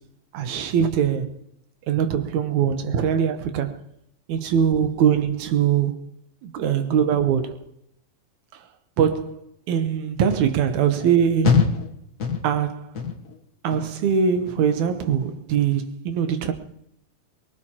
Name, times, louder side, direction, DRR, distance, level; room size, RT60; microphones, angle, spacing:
voice 1, 0.3-1.3 1.9-3.8 4.3-6.0 6.4-7.6 8.5-8.6 9.0-11.7 12.4-12.9 13.6-16.5, right 8 dB, 70° right, 2.3 m, -22 dB
sound 1, 10.3-10.5 11.0-11.2 11.4-11.9 12.2-12.6 12.9-13.4 13.7-14.1 14.5-14.8 15.2-15.4, left 6 dB, 50° left, 1.0 m, -23 dB
23.5 x 19.0 x 2.9 m
omnidirectional pair, 3.7 m